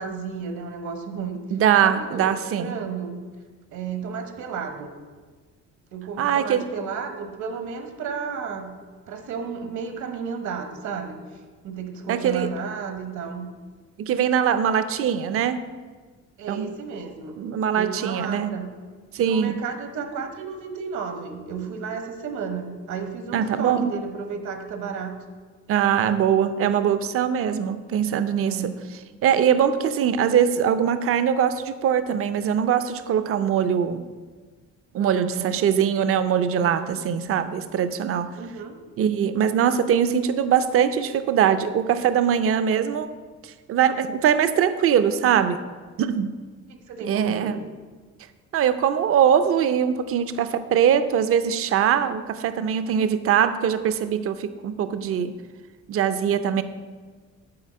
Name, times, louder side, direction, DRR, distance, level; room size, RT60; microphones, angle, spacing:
voice 1, 0.0-1.4 1.8-3.2 3.7-4.9 5.9-8.8 9.1-13.5 16.4-17.4 17.7-18.7 19.2-25.2 28.4-28.8 35.0-35.5 36.5-36.9 38.3-38.8 46.7-47.6, right 6 dB, 70° right, 6 dB, 1.2 m, -33 dB
voice 2, 1.5-2.7 6.2-6.7 12.1-12.5 14.1-15.6 16.5-16.7 17.4-18.5 19.1-19.6 23.3-23.9 25.7-28.7 29.2-34.1 34.9-38.4 39.0-43.1 43.4-45.6 46.0-46.3 47.1-47.5 48.5-55.3 55.9-56.6, right 8 dB, 50° right, 11 dB, 0.5 m, -22 dB
8.6 x 4.8 x 7.5 m, 1.4 s
cardioid pair, 175°, 30 cm